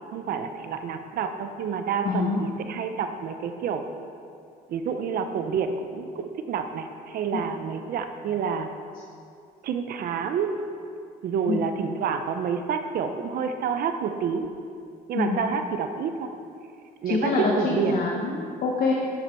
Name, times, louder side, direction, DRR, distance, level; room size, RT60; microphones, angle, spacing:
voice 1, 0.1-3.8 4.7-8.7 9.6-10.5 11.2-14.5 15.1-16.3 17.0-18.0, right 6 dB, 60° right, 7 dB, 0.7 m, -28 dB
voice 2, 2.0-2.5 11.5-11.6 15.1-15.4 17.1-18.9, left 4 dB, 55° left, -1 dB, 1.1 m, -25 dB
9.7 x 7.3 x 4.4 m, 2.4 s
cardioid pair, 110°, 17 cm